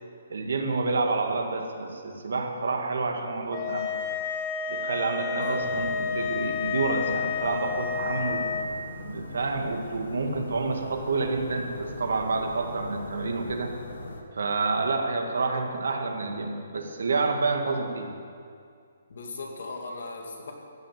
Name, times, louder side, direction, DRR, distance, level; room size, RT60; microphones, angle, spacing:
voice 1, 0.3-4.2 4.7-8.5 9.0-13.7 14.3-18.1, right 3 dB, 80° right, 3 dB, 1.9 m, -29 dB
sound 1, 3.5-8.7, left 6 dB, 25° left, 1.0 m, -30 dB
voice 2, 5.4-5.7 19.1-20.5, left 3 dB, 65° left, 0 dB, 2.5 m, -37 dB
sound 2, 5.6-14.2, left 3 dB, 85° left, 1.8 m, -40 dB
15.5 x 6.6 x 9.3 m, 2.3 s
hypercardioid pair, 170°, 0 cm